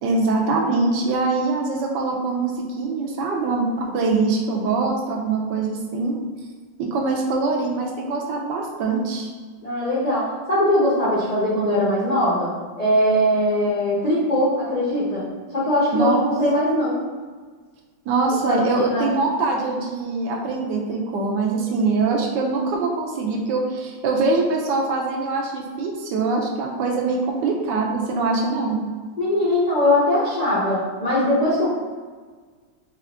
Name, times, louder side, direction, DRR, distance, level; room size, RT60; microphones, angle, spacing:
voice 1, 0.0-6.2 6.8-9.3 15.9-16.4 18.1-28.8, right 3 dB, 75° right, -1 dB, 1.2 m, -23 dB
voice 2, 9.6-12.5 12.8-17.0 18.4-19.1 29.2-31.8, left 1 dB, 55° left, -8 dB, 0.4 m, -21 dB
4.4 x 2.4 x 3.4 m, 1.5 s
omnidirectional pair, 2.0 m